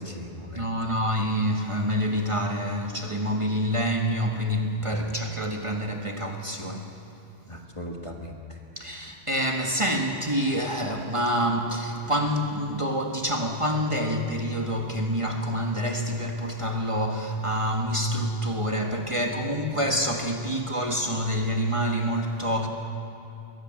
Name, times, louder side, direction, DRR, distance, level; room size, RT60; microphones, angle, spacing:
voice 1, 0.0-0.9 4.8-4.9 7.5-8.6, left 1 dB, 30° left, 2 dB, 1.8 m, -39 dB
voice 2, 0.5-6.9 8.8-22.7, equal, 30° right, 2 dB, 1.6 m, -27 dB
22.5 x 17.0 x 7.7 m, 2.8 s
omnidirectional pair, 1.1 m